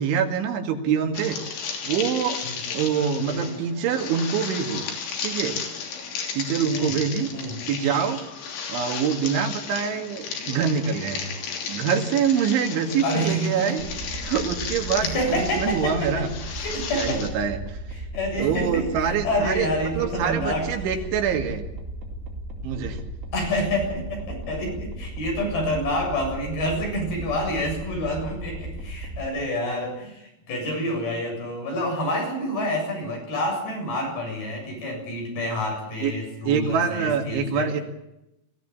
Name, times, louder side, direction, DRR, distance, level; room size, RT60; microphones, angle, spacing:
voice 1, 0.0-1.4 1.8-2.4 2.7-4.8 5.2-5.6 6.3-7.3 7.7-8.2 8.7-11.3 11.7-13.8 14.2-16.3 16.9-17.8 18.4-21.6 22.6-23.0 35.5-35.6 36.0-36.1 36.5-37.8, right 7 dB, 85° right, 5 dB, 4.7 m, -25 dB
sound 1, 1.1-17.3, left 6 dB, 80° left, 5.5 m, -34 dB
voice 2, 3.2-3.5 6.7-7.0 7.3-7.6 13.0-13.8 14.2-14.3 15.0-16.3 16.5-17.2 17.9-20.9 23.3-37.7, left 1 dB, 55° left, 1 dB, 9.2 m, -28 dB
sound 2, 13.8-29.3, right 1 dB, 20° right, 3.6 m, -36 dB
22.5 x 16.0 x 8.8 m, 0.89 s
omnidirectional pair, 5.3 m